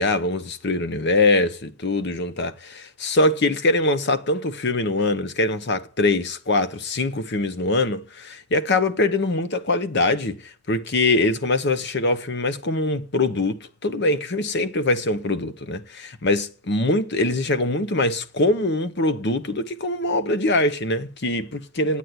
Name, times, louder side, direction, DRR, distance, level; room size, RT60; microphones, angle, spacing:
voice 1, 0.0-10.4 10.7-22.0, left 2 dB, 60° left, 1.0 m, -23 dB
9.3 x 8.5 x 9.5 m
head